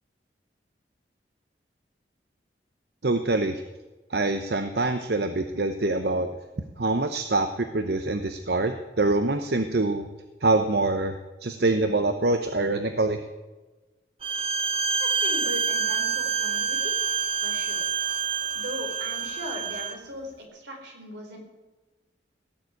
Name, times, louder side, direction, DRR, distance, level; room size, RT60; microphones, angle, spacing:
voice 1, 3.0-3.6 4.1-6.3 6.8-10.1 10.4-11.1 11.4-13.2, right 2 dB, 60° right, 8 dB, 0.9 m, -25 dB
Bowed string instrument, 14.2-20.0, right 6 dB, 30° right, 0.9 m, -27 dB
voice 2, 15.0-17.0 17.4-17.8 18.5-21.4, equal, 80° right, 1 dB, 4.6 m, -38 dB
17.5 x 7.4 x 9.6 m, 1.2 s
head